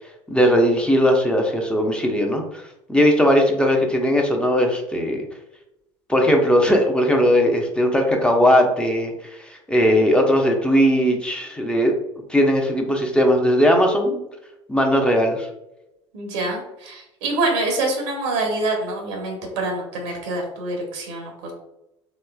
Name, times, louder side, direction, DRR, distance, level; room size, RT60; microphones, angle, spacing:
voice 1, 0.3-2.6 2.9-5.3 6.1-11.9 12.3-14.2 14.7-15.5, equal, 5° left, 2 dB, 0.7 m, -18 dB
voice 2, 16.1-21.5, right 2 dB, 70° right, 1 dB, 0.9 m, -26 dB
3.3 x 3.1 x 2.3 m, 0.87 s
hypercardioid pair, 70°, 15 cm